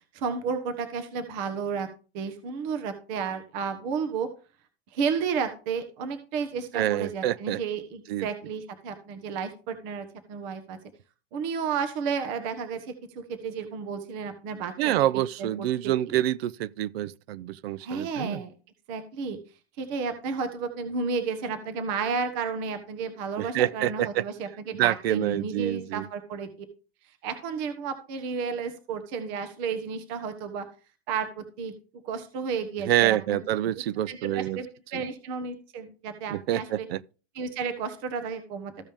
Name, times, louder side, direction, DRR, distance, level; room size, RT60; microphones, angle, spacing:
voice 1, 0.1-1.9 2.1-4.3 4.9-10.8 11.3-14.9 15.4-16.2 17.8-18.5 18.9-19.4 19.8-26.5 27.2-30.7 31.1-31.7 32.0-33.4 33.7-36.9 37.3-38.9, right 5 dB, 45° right, 1.3 m, -32 dB
voice 2, 6.7-7.6 8.1-8.3 14.8-18.4 23.4-24.2 24.7-26.1 32.9-34.6 34.9-35.0 36.3-37.0, right 13 dB, 70° right, 0.6 m, -27 dB
14.5 x 5.2 x 3.5 m
supercardioid pair, 155°, 32 cm